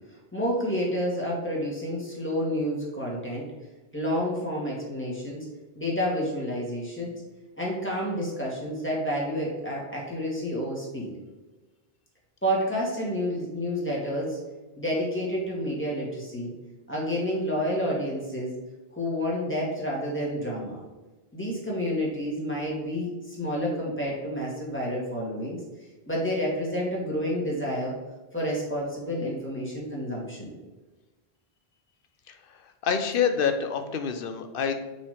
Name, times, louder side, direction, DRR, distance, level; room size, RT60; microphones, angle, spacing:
voice 1, 0.3-3.5 3.9-5.5 5.8-7.1 7.6-11.1 12.4-14.4 14.8-16.5 16.9-18.5 18.9-20.8 21.3-25.6 26.1-27.9 28.3-30.5, equal, 10° left, -4 dB, 2.0 m, -29 dB
voice 2, 32.8-34.8, left 7 dB, 65° left, 7 dB, 0.9 m, -26 dB
5.7 x 4.4 x 4.9 m, 1.2 s
omnidirectional pair, 1.0 m